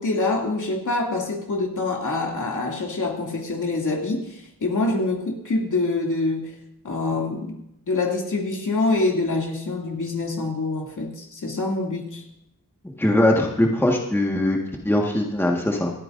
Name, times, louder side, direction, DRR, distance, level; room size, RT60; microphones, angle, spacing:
voice 1, 0.0-6.5 6.8-7.5 7.9-12.2, left 2 dB, 60° left, -1 dB, 2.6 m, -25 dB
voice 2, 13.0-14.6 14.8-15.9, left 1 dB, 5° left, 0 dB, 1.6 m, -21 dB
27.5 x 9.1 x 2.6 m, 0.80 s
wide cardioid pair, 105°, 34 cm